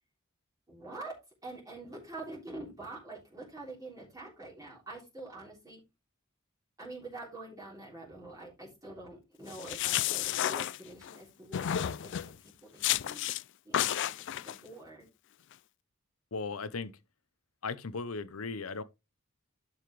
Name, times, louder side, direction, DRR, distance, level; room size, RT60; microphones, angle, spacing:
voice 1, 0.7-5.8 6.8-12.3 12.6-13.3 13.6-15.1, right 2 dB, 15° right, 3.4 m, -46 dB
sound 1, 9.5-11.2 11.5-12.3 12.8-13.4 13.7-14.6, left 11 dB, 60° left, 0.4 m, -31 dB
voice 2, 16.3-17.0 17.6-18.8, left 4 dB, 90° left, 0.9 m, -37 dB
11.5 x 5.7 x 3.2 m
head